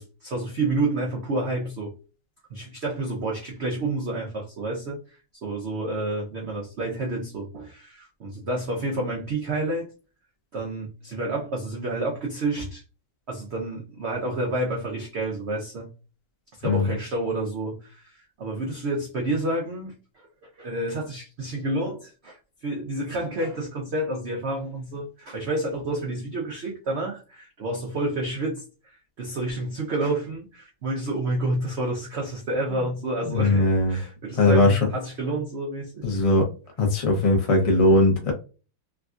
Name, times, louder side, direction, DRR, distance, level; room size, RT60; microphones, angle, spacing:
voice 1, 0.0-1.9 2.5-9.9 10.5-12.8 13.3-15.9 16.5-20.3 20.6-36.1, right 2 dB, 90° right, 0.5 m, -29 dB
voice 2, 33.3-34.0 34.4-34.8 36.0-36.5 36.8-38.3, left 2 dB, 40° left, 0.4 m, -19 dB
3.5 x 2.6 x 2.4 m
omnidirectional pair, 2.0 m